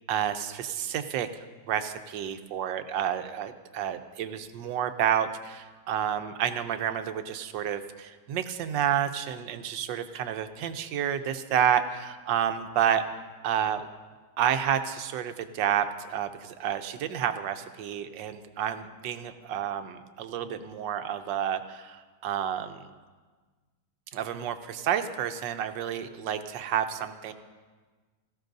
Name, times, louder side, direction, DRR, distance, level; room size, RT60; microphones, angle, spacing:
voice 1, 0.1-13.0 13.4-13.9 14.4-22.9 24.1-27.3, right 9 dB, 80° right, 9 dB, 1.4 m, -30 dB
17.5 x 15.0 x 2.6 m, 1.4 s
omnidirectional pair, 2.0 m